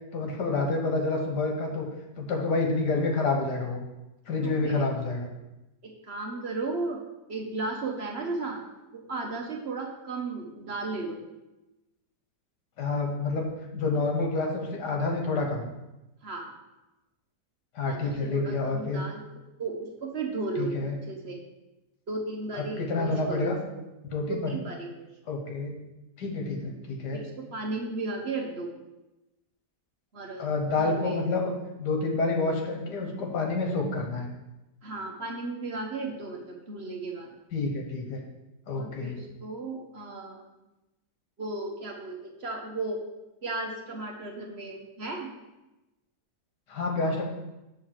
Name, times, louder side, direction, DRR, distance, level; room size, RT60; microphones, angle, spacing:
voice 1, 0.1-1.9 2.2-3.8 4.3-5.3 12.8-13.5 13.7-15.7 17.8-19.0 20.6-21.0 22.5-23.6 24.1-24.5 25.3-25.8 26.2-27.2 30.4-31.5 31.8-34.3 37.5-38.2 38.7-39.2 46.7-47.2, left 3 dB, 85° left, 1 dB, 1.8 m, -28 dB
voice 2, 4.4-4.9 5.8-7.0 7.3-8.6 8.9-11.2 16.2-16.5 17.8-19.2 19.6-20.8 21.1-21.4 22.1-23.8 24.5-25.1 27.1-28.7 30.1-30.5 30.8-31.2 34.8-37.3 38.8-40.5 41.4-43.0 43.4-45.3, right 3 dB, 45° right, 0 dB, 1.0 m, -35 dB
7.6 x 3.6 x 6.3 m, 0.99 s
omnidirectional pair, 1.7 m